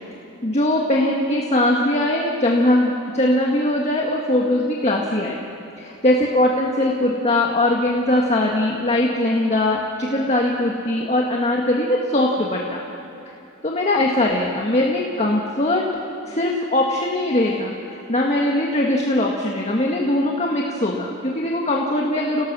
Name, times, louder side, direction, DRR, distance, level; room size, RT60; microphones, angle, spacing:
voice 1, 0.4-5.4 5.8-12.8 13.6-15.8 16.2-17.7 18.1-22.4, left 1 dB, 30° left, -1 dB, 1.7 m, -21 dB
30.0 x 18.5 x 6.2 m, 3.0 s
head